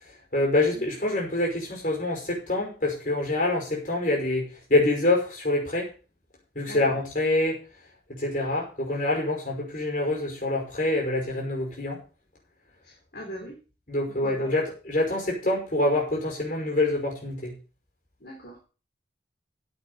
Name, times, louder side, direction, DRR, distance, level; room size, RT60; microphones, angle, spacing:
voice 1, 0.3-5.9 6.6-7.6 8.1-12.0 13.9-17.5, left 2 dB, 45° left, -1 dB, 5.6 m, -26 dB
voice 2, 6.7-7.0 12.8-13.6 14.2-14.5 18.2-18.6, equal, 65° left, -1 dB, 3.4 m, -40 dB
9.8 x 8.0 x 6.7 m, 0.34 s
head